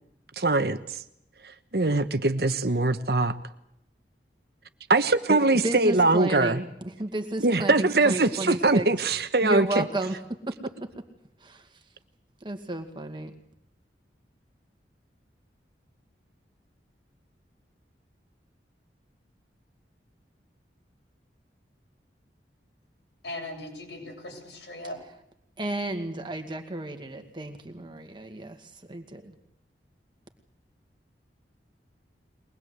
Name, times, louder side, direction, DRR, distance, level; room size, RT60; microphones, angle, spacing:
voice 1, 0.4-0.8 1.7-3.3 4.9-6.6 7.4-9.8, right 2 dB, 60° right, 10 dB, 1.2 m, -22 dB
voice 2, 5.6-8.9 9.4-10.9 11.4-11.7 12.4-13.3 25.6-29.4, right 2 dB, 25° right, 6 dB, 2.1 m, -33 dB
voice 3, 23.2-25.0, left 1 dB, 80° left, 1 dB, 7.6 m, -38 dB
23.0 x 20.0 x 8.1 m, 0.78 s
head